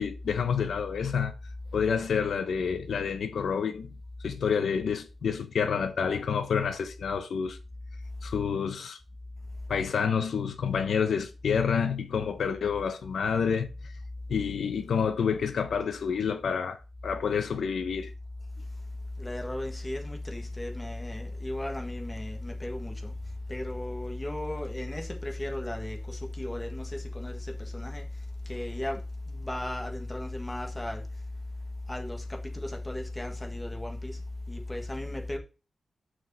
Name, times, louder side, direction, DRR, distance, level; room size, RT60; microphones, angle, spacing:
voice 1, 0.0-1.3 1.7-3.9 4.2-7.6 8.2-9.0 9.7-13.9 14.3-18.1, left 6 dB, 85° left, 0.9 m, -28 dB
voice 2, 19.2-23.1 23.5-28.0 28.5-29.0 29.3-31.0 31.9-34.2 34.5-35.4, left 1 dB, 15° left, 1.6 m, -35 dB
6.3 x 4.8 x 5.4 m
wide cardioid pair, 140°, 0 cm